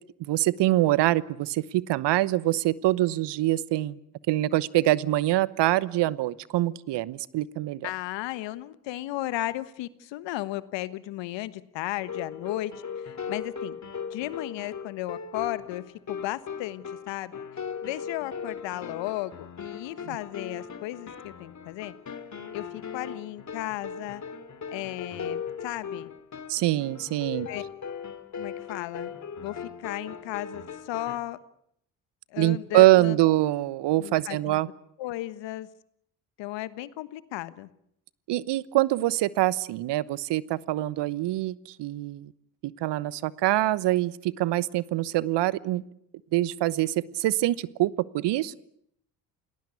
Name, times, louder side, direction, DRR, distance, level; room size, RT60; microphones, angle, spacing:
voice 1, 0.2-4.0 4.3-7.9 26.5-27.5 32.4-34.7 38.3-42.3 42.6-45.8 46.3-48.6, right 16 dB, 65° right, 20 dB, 1.1 m, -24 dB
voice 2, 7.8-13.8 14.1-17.4 17.8-21.9 22.5-24.2 24.7-26.1 27.5-27.6 28.4-29.1 29.4-31.4 32.3-33.2 34.0-34.6 35.0-35.7 36.4-37.7, left 16 dB, 70° left, 15 dB, 1.4 m, -35 dB
sound 1, 12.0-31.2, left 6 dB, 40° left, 2.7 m, -38 dB
28.5 x 18.5 x 8.4 m, 0.72 s
hypercardioid pair, 50°, 45 cm